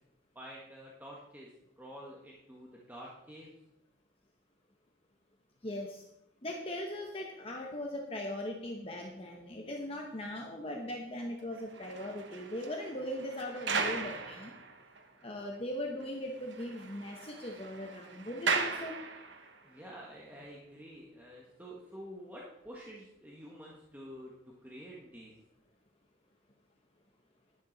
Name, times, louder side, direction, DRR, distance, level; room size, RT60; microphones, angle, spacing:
voice 1, 0.3-1.5 1.8-3.5 19.6-24.3 24.6-25.3, equal, 10° right, -4 dB, 1.3 m, -48 dB
voice 2, 5.6-6.0 6.4-14.5 15.2-19.0, left 1 dB, 30° left, 1 dB, 1.0 m, -39 dB
sound 1, 11.5-15.2 15.5-15.6 16.0-16.1 16.4-19.6 20.3-20.5, right 4 dB, 65° right, 1.2 m, -38 dB
11.0 x 11.0 x 4.1 m, 0.86 s
head